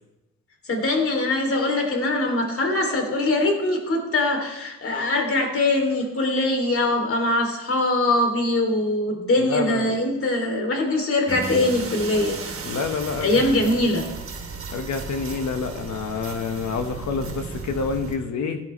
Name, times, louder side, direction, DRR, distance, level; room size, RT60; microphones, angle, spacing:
voice 1, 0.6-12.6 13.2-14.1, left 2 dB, 45° left, 3 dB, 3.0 m, -22 dB
voice 2, 9.5-9.9 12.7-13.7 14.7-18.6, left 5 dB, 65° left, 7 dB, 1.4 m, -28 dB
sound 1, 11.3-18.1, right 5 dB, 50° right, 2.6 m, -35 dB
16.0 x 10.5 x 3.2 m, 1.0 s
cardioid pair, 90°, 30 cm